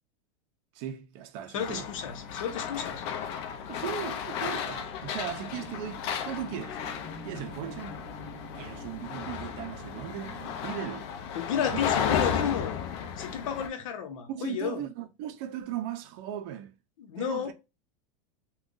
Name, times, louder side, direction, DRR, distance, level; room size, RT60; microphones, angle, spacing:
voice 1, 0.7-1.9 3.7-6.8 7.2-8.0 8.5-11.1 11.7-11.8 14.3-16.8 17.2-17.5, right 10 dB, 50° right, 0.5 m, -37 dB
voice 2, 1.5-3.0 11.4-12.8 13.2-14.8 17.0-17.5, left 8 dB, 85° left, 0.7 m, -32 dB
sound 1, 1.6-13.7, left 8 dB, 50° left, 0.5 m, -34 dB
sound 2, 5.3-13.1 13.6-13.7, left 1 dB, 30° left, 0.9 m, -49 dB
2.5 x 2.3 x 3.7 m
supercardioid pair, 160°, 17 cm